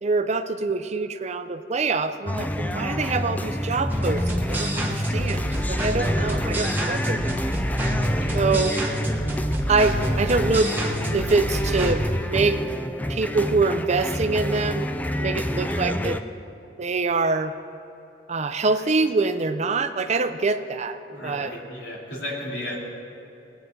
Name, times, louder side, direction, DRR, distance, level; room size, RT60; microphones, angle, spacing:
voice 1, 0.0-7.5 8.3-8.8 9.7-10.7 11.1-12.6 13.1-14.9 15.2-16.2 16.8-17.5 18.3-21.5, right 3 dB, 40° right, 9 dB, 0.6 m, -25 dB
sound 1, 2.3-16.2, left 1 dB, 10° left, 0.4 m, -28 dB
sound 2, 3.9-12.0, right 1 dB, 10° right, 1.2 m, -27 dB
voice 2, 15.4-16.3 18.7-18.8 21.1-22.9, left 1 dB, 80° left, -4 dB, 2.9 m, -35 dB
20.0 x 9.2 x 3.9 m, 2.8 s
head